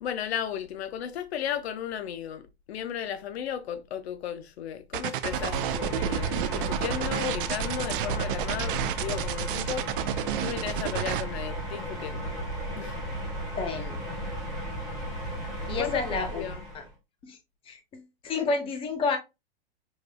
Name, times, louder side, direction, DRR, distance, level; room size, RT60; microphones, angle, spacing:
voice 1, 0.0-9.9 10.4-12.4 12.7-13.0 15.8-15.9 16.3-16.6, left 9 dB, 80° left, 0.7 m, -35 dB
sound 1, 4.9-11.2, right 13 dB, 55° right, 0.5 m, -31 dB
sound 2, 5.3-16.9, right 1 dB, ahead, 1.7 m, -34 dB
voice 2, 13.6-14.0 15.7-16.5 16.7-16.8 17.2-17.4 17.7-19.2, left 4 dB, 15° left, 0.6 m, -30 dB
5.1 x 3.1 x 2.2 m
hypercardioid pair, 145°, 31 cm